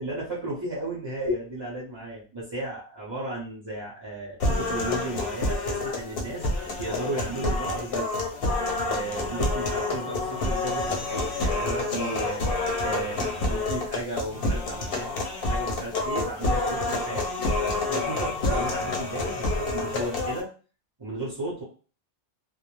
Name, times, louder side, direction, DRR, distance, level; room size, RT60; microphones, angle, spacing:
voice 1, 0.0-6.4 6.8-8.1 8.8-12.4 12.8-15.1 15.4-20.5 21.0-21.6, right 1 dB, 25° right, -7 dB, 0.6 m, -34 dB
sound 1, 4.4-20.4, left 2 dB, 60° left, 0.7 m, -28 dB
2.3 x 2.0 x 3.0 m, 0.37 s
omnidirectional pair, 1.2 m